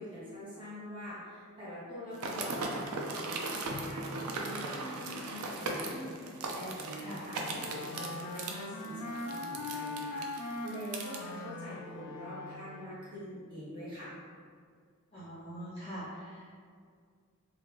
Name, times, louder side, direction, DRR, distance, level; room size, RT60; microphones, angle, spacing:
voice 1, 0.0-14.1, equal, 20° right, -11 dB, 1.1 m, -44 dB
sound 1, 2.1-11.2, right 3 dB, 75° right, 0.4 m, -38 dB
Bowed string instrument, 3.7-6.3, equal, 50° right, 0.8 m, -49 dB
Wind instrument woodwind instrument, 7.3-13.1, left 2 dB, 80° left, 0.3 m, -41 dB
voice 2, 15.1-16.5, equal, 25° left, -12 dB, 0.8 m, -43 dB
2.9 x 2.4 x 3.2 m, 2.1 s
head